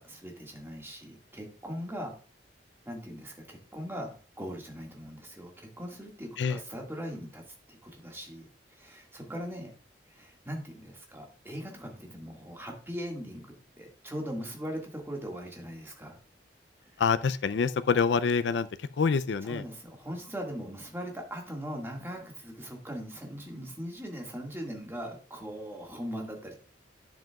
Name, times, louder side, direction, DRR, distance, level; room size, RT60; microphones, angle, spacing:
voice 1, 0.0-2.1 2.9-9.7 10.1-16.2 16.8-16.9 19.4-26.5, equal, 15° right, 0 dB, 1.8 m, -40 dB
voice 2, 17.0-19.6, left 5 dB, 75° left, 13 dB, 0.4 m, -26 dB
10.5 x 7.3 x 2.3 m, 0.39 s
head